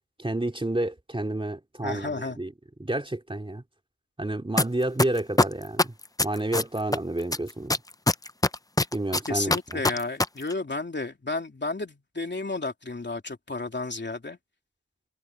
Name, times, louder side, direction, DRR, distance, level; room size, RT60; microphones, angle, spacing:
voice 1, 0.2-2.5 2.8-3.6 4.2-5.9 6.2-7.8 8.9-9.8, right 1 dB, 15° right, 2.7 m, -30 dB
voice 2, 1.8-2.4 9.3-14.4, left 3 dB, 30° left, 3.2 m, -32 dB
sound 1, 4.6-4.7 5.0-7.0 7.3-10.2 10.5-10.6, left 2 dB, 10° left, 0.6 m, -21 dB
wide cardioid pair, 95°, 38 cm